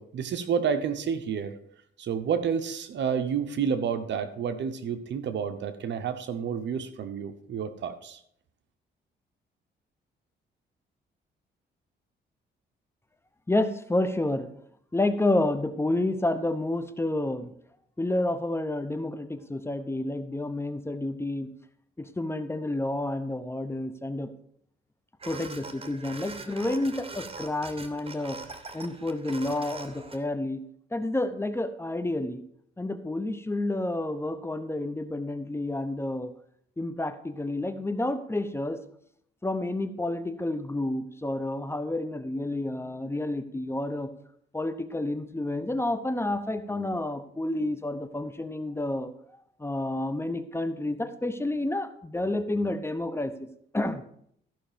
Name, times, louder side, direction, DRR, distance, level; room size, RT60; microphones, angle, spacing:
voice 1, 0.0-1.6 2.0-8.2, right 7 dB, 65° right, 10 dB, 1.0 m, -30 dB
voice 2, 13.5-14.5 14.9-17.5 18.0-21.5 22.0-24.3 25.3-28.4 28.7-30.6 30.9-32.4 32.8-36.3 36.8-38.8 39.4-44.1 44.5-49.1 49.6-53.5 53.7-54.0, left 2 dB, 10° left, 10 dB, 0.8 m, -30 dB
sound 1, 25.2-30.2, right 3 dB, 30° right, 1.1 m, -42 dB
14.0 x 5.6 x 5.1 m, 0.67 s
cardioid pair, 90°, 20 cm